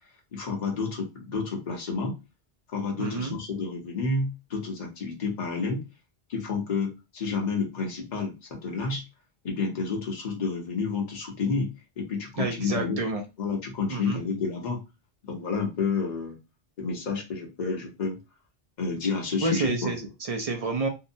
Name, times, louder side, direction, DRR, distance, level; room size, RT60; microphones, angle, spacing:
voice 1, 0.3-2.2 2.7-5.8 6.3-9.0 9.4-13.0 13.4-14.8 15.2-16.4 16.8-18.2 18.8-19.9, left 4 dB, 50° left, 0 dB, 0.9 m, -30 dB
voice 2, 3.0-3.3 12.4-13.2 13.9-14.2 19.4-20.9, right 3 dB, 50° right, 3 dB, 0.5 m, -29 dB
2.8 x 2.1 x 2.6 m, 0.26 s
omnidirectional pair, 1.0 m